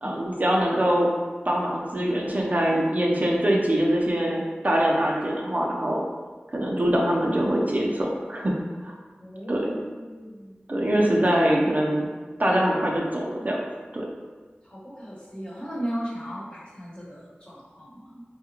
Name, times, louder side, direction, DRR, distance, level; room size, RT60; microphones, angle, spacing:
voice 1, 0.0-1.1 1.4-6.0 6.5-8.6 8.8-8.9 9.5-9.7 10.7-12.1 12.4-13.6 13.9-14.1, equal, 45° right, -2 dB, 0.5 m, -23 dB
voice 2, 9.2-10.6 11.0-11.1 11.3-11.5 12.5-12.7 14.6-18.2, equal, 30° left, -7 dB, 1.1 m, -37 dB
4.1 x 2.4 x 2.9 m, 1.4 s
wide cardioid pair, 60°, 4 cm